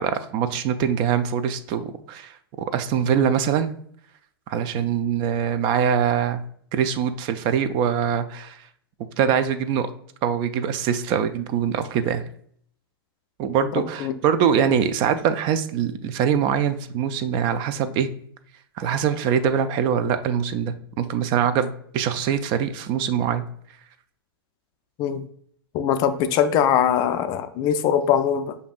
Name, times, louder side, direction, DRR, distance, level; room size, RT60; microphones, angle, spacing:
voice 1, 0.0-3.8 4.5-6.4 6.7-8.6 9.2-9.9 10.2-12.2 13.4-18.1 18.8-23.4, right 8 dB, 35° right, 10 dB, 0.4 m, -23 dB
voice 2, 13.8-14.1 25.0-25.2 25.7-28.6, left 9 dB, 35° left, 10 dB, 0.3 m, -22 dB
6.7 x 2.7 x 2.4 m, 0.63 s
hypercardioid pair, 110°, 13 cm